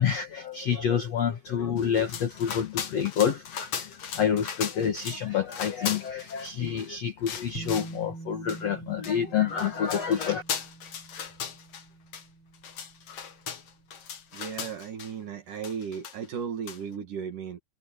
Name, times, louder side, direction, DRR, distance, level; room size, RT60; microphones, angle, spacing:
voice 1, 0.0-10.4, left 8 dB, 75° left, 1.5 m, -28 dB
sound 1, 1.8-5.2 5.5-6.9 7.3-8.0 8.5-8.6 9.0-9.1 9.5-11.8 12.1-12.2 12.5-15.1 15.6-16.4 16.7-16.8, left 7 dB, 50° left, 1.9 m, -37 dB
sound 2, 7.5-14.1, right 2 dB, 25° left, 8.6 m, -45 dB
voice 2, 14.3-17.6, right 7 dB, 50° right, 3.2 m, -35 dB
omnidirectional pair, 5.3 m